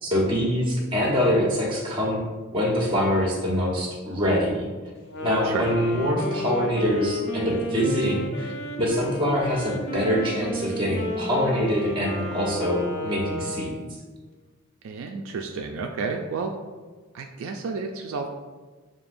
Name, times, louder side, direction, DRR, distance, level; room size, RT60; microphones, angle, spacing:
voice 1, 0.0-2.2 2.5-4.7 5.2-13.8, equal, 25° right, -3 dB, 1.1 m, -24 dB
Wind instrument woodwind instrument, 5.0-14.0, equal, 55° left, 0.7 m, -32 dB
voice 2, 14.8-16.6 17.1-18.3, right 4 dB, 70° right, 3 dB, 0.3 m, -31 dB
6.9 x 2.7 x 2.6 m, 1.3 s
head